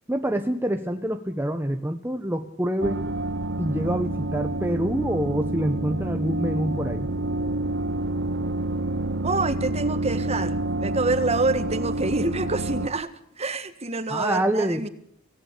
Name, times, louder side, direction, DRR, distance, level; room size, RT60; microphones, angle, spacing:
voice 1, 0.1-3.0 3.6-7.1 14.1-14.8, right 1 dB, 10° right, 6 dB, 1.1 m, -26 dB
sound 1, 2.8-12.9, right 2 dB, 55° right, 1.1 m, -28 dB
voice 2, 9.2-14.9, right 3 dB, 30° right, 11 dB, 1.7 m, -27 dB
26.5 x 18.0 x 8.4 m, 0.65 s
head